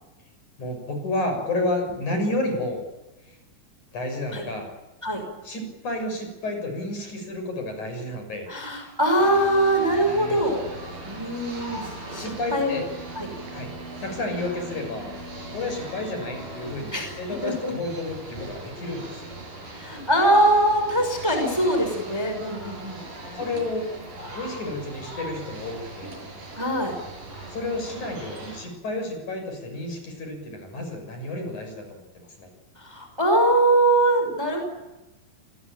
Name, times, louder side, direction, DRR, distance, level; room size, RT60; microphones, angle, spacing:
voice 1, 0.6-2.8 3.9-4.7 5.4-8.5 8.8-8.9 10.1-10.4 12.1-12.8 13.5-13.7 14.0-15.1 15.5-19.3 23.2-23.9 24.3-26.1 27.5-32.5, left 2 dB, 50° left, 5 dB, 8.0 m, -31 dB
voice 2, 8.5-10.6 11.0-12.8 13.2-13.3 16.9-17.1 17.4-17.7 19.7-23.1 26.6-27.0 32.8-34.6, right 1 dB, 5° right, 4 dB, 5.3 m, -22 dB
sound 1, 9.2-28.6, right 2 dB, 60° right, 9.1 m, -39 dB
28.0 x 21.0 x 9.0 m, 1.1 s
omnidirectional pair, 4.3 m